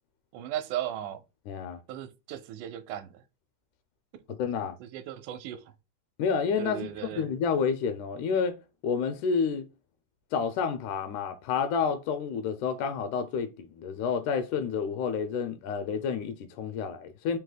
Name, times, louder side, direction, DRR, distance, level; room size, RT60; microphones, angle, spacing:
voice 1, 0.3-1.2 1.9-3.2 4.6-5.6 6.6-7.3, right 11 dB, 85° right, 2.0 m, -36 dB
voice 2, 1.5-1.8 4.3-4.8 6.2-8.6 8.8-9.7 10.3-17.4, left 6 dB, 85° left, 2.0 m, -29 dB
4.8 x 2.8 x 3.8 m
omnidirectional pair, 3.5 m